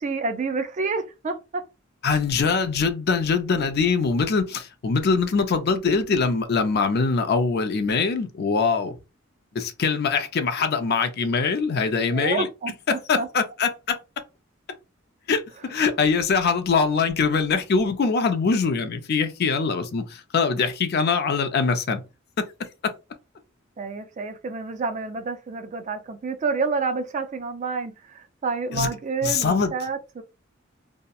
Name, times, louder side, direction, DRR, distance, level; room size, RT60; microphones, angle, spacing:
voice 1, 0.0-1.7 12.1-13.3 23.8-30.2, right 4 dB, 40° right, 0.4 m, -29 dB
voice 2, 2.0-9.0 9.5-12.5 12.9-14.0 15.3-15.4 15.7-22.0 28.7-28.9 29.2-29.7, left 5 dB, 55° left, 0.4 m, -23 dB
2.7 x 2.1 x 2.3 m
head